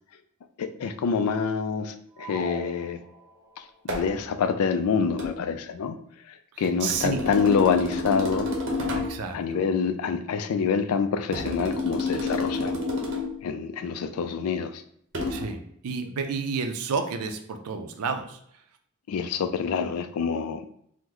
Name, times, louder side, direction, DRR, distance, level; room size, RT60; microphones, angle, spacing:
voice 1, 0.6-3.0 3.6-5.9 6.3-8.5 9.3-12.8 13.4-14.8 19.1-20.7, left 6 dB, 80° left, 8 dB, 0.3 m, -26 dB
sound 1, 2.2-3.6, left 1 dB, 10° right, 0.5 m, -39 dB
sound 2, 3.9-4.1 5.2-5.4 6.9-9.2 11.3-13.4 15.1-15.4, left 2 dB, 60° right, 0.7 m, -29 dB
voice 2, 6.8-7.2 9.0-9.6 15.3-18.4, right 5 dB, 90° right, 6 dB, 0.4 m, -30 dB
3.0 x 2.1 x 3.6 m, 0.68 s
head